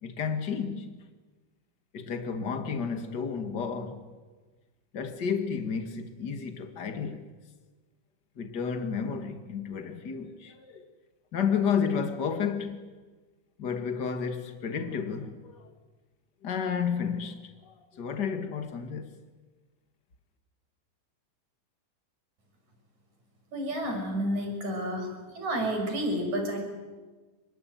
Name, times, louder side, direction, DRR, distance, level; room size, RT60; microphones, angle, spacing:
voice 1, 0.0-0.9 1.9-4.1 4.9-7.3 8.4-10.9 11.3-12.9 13.6-15.7 16.4-19.1, left 6 dB, 35° left, 2.5 m, -31 dB
voice 2, 23.5-25.1 25.3-26.6, equal, 65° right, 7.8 m, -30 dB
29.0 x 21.0 x 9.4 m
omnidirectional pair, 3.6 m